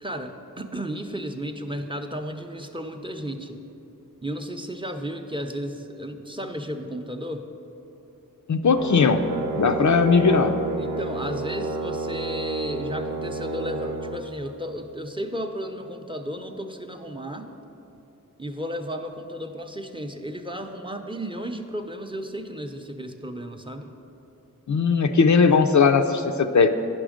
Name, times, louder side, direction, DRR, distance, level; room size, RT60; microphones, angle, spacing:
voice 1, 0.0-3.6 4.2-7.5 10.8-17.5 18.4-23.9, equal, 15° right, 4 dB, 0.6 m, -33 dB
voice 2, 8.5-9.2 9.6-10.5 24.7-26.7, left 5 dB, 60° left, 8 dB, 0.5 m, -18 dB
Brass instrument, 8.7-14.2, right 3 dB, 90° right, 0.7 m, -30 dB
9.8 x 6.1 x 5.0 m, 2.9 s
wide cardioid pair, 50°, 33 cm